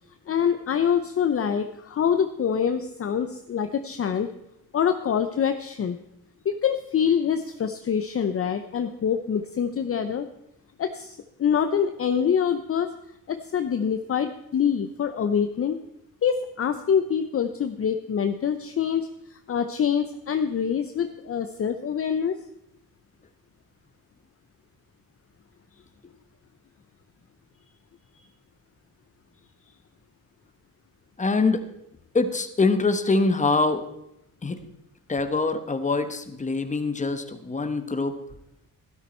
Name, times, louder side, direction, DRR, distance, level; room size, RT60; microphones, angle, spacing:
voice 1, 0.3-4.3 4.7-6.0 6.4-10.3 10.8-12.9 13.3-15.8 16.2-22.4 28.2-28.3, left 7 dB, 40° left, 8 dB, 0.7 m, -25 dB
voice 2, 31.2-31.6 32.1-33.8 34.4-34.6 35.1-38.1, left 3 dB, 20° left, 9 dB, 1.1 m, -24 dB
12.5 x 12.5 x 4.4 m, 0.81 s
cardioid pair, 110°, 37 cm